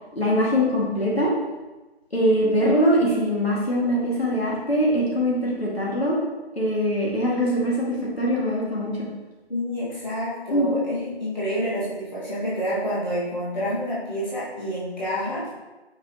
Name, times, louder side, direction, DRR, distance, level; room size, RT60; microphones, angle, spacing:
voice 1, 0.1-1.3 2.1-6.2 6.6-8.9 10.5-10.7, equal, 65° left, -5 dB, 2.1 m, -22 dB
voice 2, 9.5-15.5, equal, 45° left, -9 dB, 1.9 m, -28 dB
6.1 x 5.9 x 3.0 m, 1.1 s
figure-of-eight pair, 165°, 33 cm